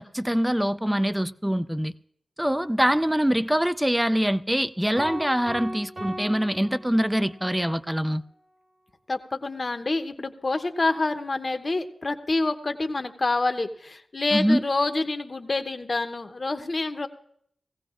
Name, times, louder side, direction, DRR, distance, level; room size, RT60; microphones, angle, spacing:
voice 1, 0.0-1.9 2.4-8.2 14.3-14.6, equal, 10° right, 0.4 m, -24 dB
sound 1, 5.0-7.4, right 1 dB, 45° right, 1.7 m, -38 dB
voice 2, 9.1-17.1, left 2 dB, 45° left, 0.9 m, -27 dB
19.0 x 15.5 x 2.5 m
cardioid pair, 45°, 0 cm